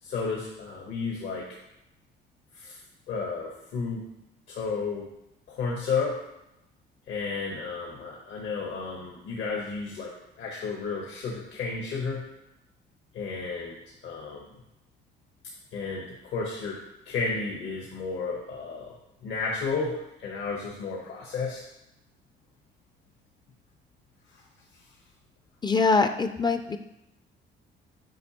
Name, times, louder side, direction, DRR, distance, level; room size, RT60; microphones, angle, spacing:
voice 1, 0.0-1.5 2.5-2.8 3.1-4.0 4.5-5.1 5.5-6.2 7.1-12.2 13.1-13.8 14.0-14.5 15.7-18.9 19.2-21.6, left 4 dB, 75° left, -2 dB, 1.1 m, -32 dB
voice 2, 25.6-26.8, left 4 dB, 20° left, 9 dB, 0.4 m, -23 dB
7.7 x 4.7 x 2.9 m, 0.88 s
cardioid pair, 90°, 20 cm